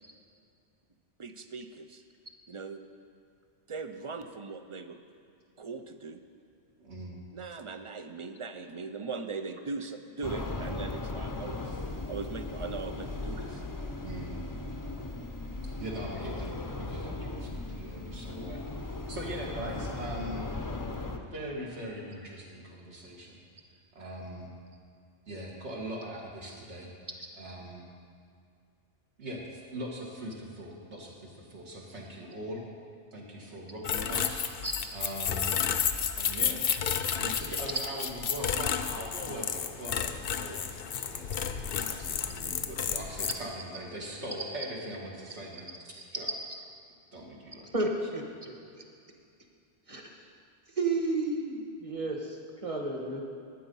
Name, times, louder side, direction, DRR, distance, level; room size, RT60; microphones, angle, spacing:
voice 1, 1.2-2.0 2.5-2.8 3.7-5.0 5.6-6.2 7.3-11.6 12.1-13.6, right 4 dB, 45° right, 8 dB, 0.4 m, -39 dB
voice 2, 6.8-7.2 14.0-14.3 15.6-16.5 16.8-18.6 19.1-20.5 21.3-23.4 24.0-24.5 25.3-26.9 27.4-27.9 29.2-32.6 33.1-34.5 34.9-35.6 36.2-36.6 37.1-41.3 41.9-46.3 47.1-47.8, right 1 dB, 75° right, -2 dB, 2.2 m, -41 dB
sound 1, 10.2-21.2, left 2 dB, 25° left, 0.5 m, -37 dB
sound 2, 33.8-43.3, left 7 dB, 60° left, 0.8 m, -31 dB
voice 3, 47.7-48.5 49.9-50.1 50.8-53.2, right 2 dB, 30° right, 1 dB, 1.3 m, -32 dB
11.5 x 9.0 x 5.4 m, 2.3 s
omnidirectional pair, 1.2 m